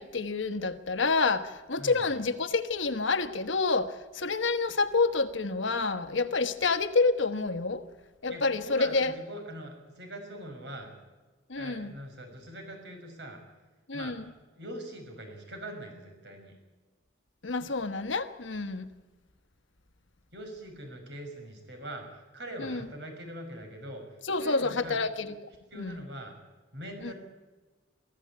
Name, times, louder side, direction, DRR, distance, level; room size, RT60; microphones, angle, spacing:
voice 1, 0.0-7.8 8.2-9.1 11.5-11.9 13.9-14.2 17.4-18.9 22.6-22.8 24.3-25.3 25.8-26.0 27.0-27.1, left 3 dB, 80° left, 1.2 m, -28 dB
voice 2, 8.3-11.0 11.6-13.4 13.9-14.3 14.6-16.6 20.3-25.0 25.7-26.4 26.7-27.1, right 1 dB, 60° right, 5.9 m, -42 dB
24.0 x 14.5 x 8.6 m
head